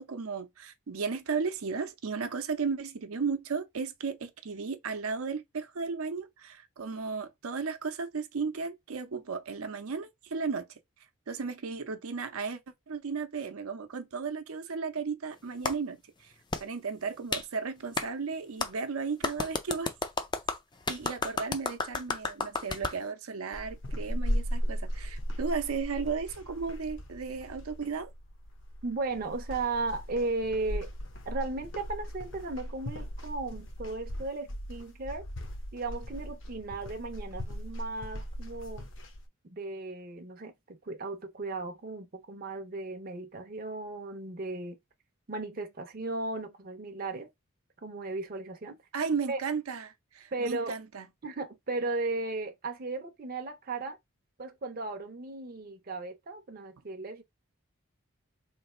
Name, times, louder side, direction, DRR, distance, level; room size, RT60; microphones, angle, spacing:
voice 1, 0.0-10.7 11.3-12.6 12.9-16.3 16.6-19.9 20.9-28.1 48.9-51.1, right 5 dB, 85° right, 0.6 m, -35 dB
Clapping, 15.6-15.8 16.5-16.6 17.3-17.4 18.0-18.1 18.6-18.7 19.2-23.0, left 4 dB, 20° left, 0.4 m, -32 dB
sound 1, 23.5-39.2, equal, 60° left, 0.8 m, -37 dB
voice 2, 28.8-30.9 31.2-35.3 35.7-38.9 39.4-44.8 45.3-47.3 47.8-48.8 49.3-49.4 50.3-50.8 51.2-54.0 54.4-57.2, right 3 dB, 40° right, 0.6 m, -36 dB
3.3 x 2.5 x 4.2 m
head